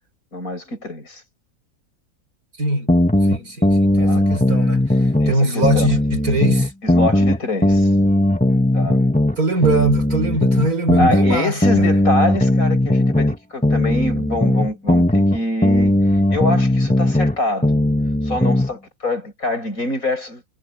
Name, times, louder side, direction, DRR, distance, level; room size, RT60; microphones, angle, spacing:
voice 1, 0.3-1.2 4.0-4.2 5.2-5.9 6.8-7.9 8.7-9.0 11.0-15.9 16.3-17.7 18.2-20.5, left 1 dB, 60° left, 8.1 m, -25 dB
voice 2, 2.5-2.9 3.2-6.7 9.4-11.9, right 1 dB, 70° right, 5.6 m, -22 dB
sound 1, 2.9-5.4 5.6-9.4 9.6-13.4 13.6-17.4 17.6-18.7, left 1 dB, 5° left, 1.5 m, -17 dB
omnidirectional pair, 1.6 m